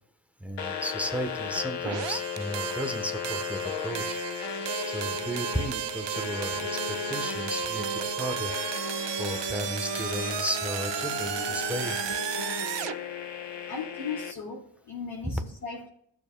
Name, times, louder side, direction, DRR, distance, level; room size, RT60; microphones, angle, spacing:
voice 1, 0.4-4.2 4.8-7.9 8.2-8.5 9.2-12.0 15.2-15.4, equal, 5° right, 7 dB, 1.0 m, -34 dB
sound 1, 0.6-14.3, left 6 dB, 65° left, 0.9 m, -35 dB
sound 2, 1.8-13.0, right 13 dB, 70° right, 0.6 m, -34 dB
voice 2, 13.7-15.9, left 5 dB, 40° left, -4 dB, 2.9 m, -37 dB
16.0 x 7.1 x 2.3 m, 0.67 s
cardioid pair, 85°, 45 cm